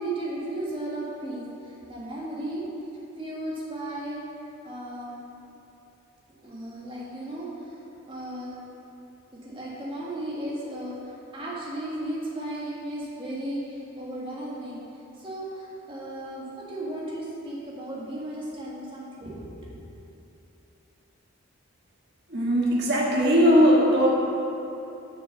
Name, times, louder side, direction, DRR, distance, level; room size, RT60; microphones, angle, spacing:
voice 1, 0.0-2.6 3.2-4.2 4.6-5.2 6.4-7.8 8.1-8.6 9.3-14.8 15.2-19.8, right 1 dB, 25° right, -6 dB, 1.8 m, -35 dB
voice 2, 22.3-24.1, equal, 50° right, -4 dB, 1.7 m, -19 dB
7.1 x 6.9 x 6.7 m, 2.9 s
head